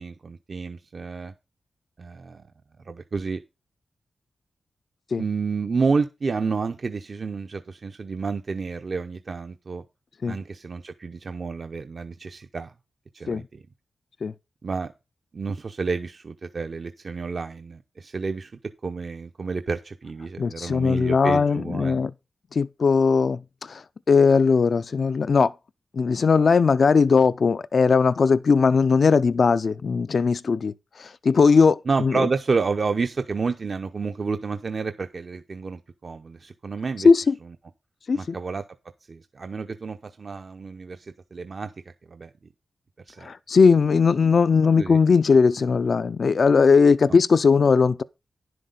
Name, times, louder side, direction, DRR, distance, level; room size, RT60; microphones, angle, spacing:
voice 1, 0.0-1.3 2.0-2.4 2.9-3.4 5.2-9.8 10.3-12.7 13.1-13.4 14.6-14.9 15.3-18.5 18.8-22.1 31.9-37.1 38.1-38.6 39.1-41.7 42.1-42.3 43.1-43.3 44.8-45.0, right 4 dB, 55° right, 0.7 m, -30 dB
voice 2, 20.4-22.1 22.5-25.5 25.9-32.3 37.0-37.4 38.1-38.4 43.2-48.0, left 5 dB, 60° left, 0.5 m, -19 dB
10.5 x 7.8 x 3.9 m
cardioid pair, 70°, 0 cm